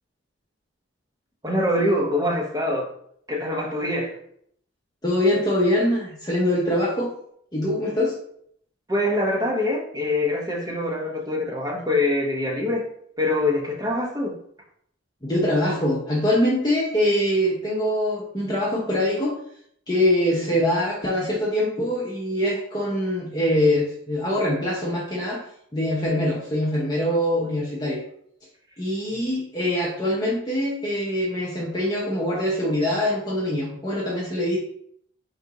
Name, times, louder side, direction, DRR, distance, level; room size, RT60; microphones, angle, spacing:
voice 1, 1.4-2.9 3.3-4.2 8.9-12.9 13.2-14.4 29.1-29.2, left 1 dB, 20° right, 0.9 m, -24 dB
voice 2, 5.0-7.1 7.5-8.2 15.2-19.4 19.9-25.4 25.7-28.0 28.8-34.6, left 1 dB, 20° left, 0.7 m, -23 dB
4.0 x 2.6 x 4.7 m
head